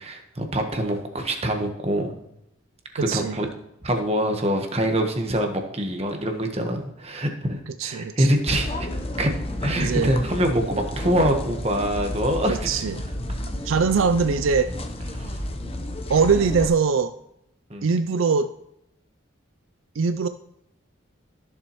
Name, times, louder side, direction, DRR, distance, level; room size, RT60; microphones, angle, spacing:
voice 1, 0.0-2.2 2.9-3.5 3.8-8.9 9.2-9.3 9.6-12.7 15.1-15.4 17.7-17.9, equal, 30° right, 4 dB, 1.2 m, -25 dB
voice 2, 3.0-3.4 7.7-8.3 9.8-10.1 12.4-13.0 13.6-14.7 16.1-17.1 17.8-18.5 20.0-20.3, right 5 dB, 80° right, 10 dB, 0.4 m, -22 dB
sound 1, 8.5-16.7, left 1 dB, 30° left, 0.8 m, -31 dB
14.0 x 7.1 x 3.0 m, 0.79 s
head